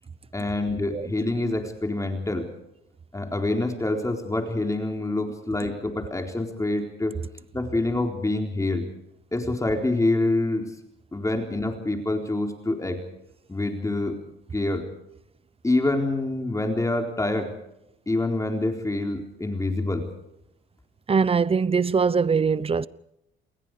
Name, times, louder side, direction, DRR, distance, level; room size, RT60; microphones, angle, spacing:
voice 1, 0.3-2.5 3.1-7.2 7.5-8.9 9.3-10.7 11.1-13.0 13.5-14.2 14.5-14.9 15.6-17.5 18.1-20.1, left 2 dB, 15° left, 4.0 m, -26 dB
voice 2, 21.1-22.9, right 5 dB, 30° right, 0.8 m, -22 dB
28.5 x 21.5 x 5.0 m
cardioid pair, 90°, 20 cm